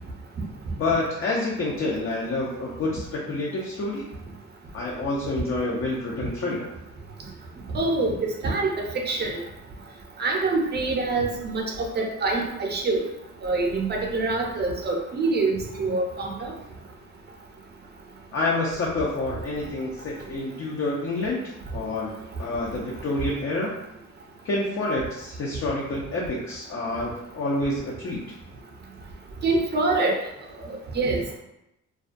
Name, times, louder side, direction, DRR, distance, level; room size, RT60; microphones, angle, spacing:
voice 1, 0.8-4.0 4.7-6.7 18.3-21.4 21.7-22.1 22.4-23.7 24.4-28.2, left 2 dB, 45° left, -4 dB, 0.5 m, -28 dB
voice 2, 7.7-9.4 10.2-13.0 13.4-16.5 29.4-30.1 30.6-31.4, right 3 dB, 35° right, 1 dB, 0.5 m, -25 dB
2.3 x 2.1 x 2.5 m, 0.86 s
cardioid pair, 90°, 30 cm